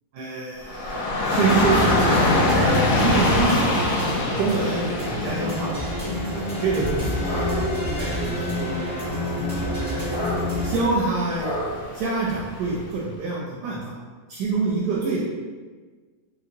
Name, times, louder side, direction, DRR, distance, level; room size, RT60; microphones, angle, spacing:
voice 1, 0.2-3.9 4.4-5.7 6.6-8.8 9.7-10.3 10.6-14.0 14.3-15.2, right 3 dB, 75° right, -4 dB, 1.1 m, -26 dB
Dog / Rain, 0.6-12.8, left 2 dB, 70° left, 0.7 m, -26 dB
sound 1, 1.2-10.8, left 1 dB, 10° left, 0.8 m, -28 dB
2.9 x 2.8 x 2.6 m, 1.4 s
omnidirectional pair, 1.9 m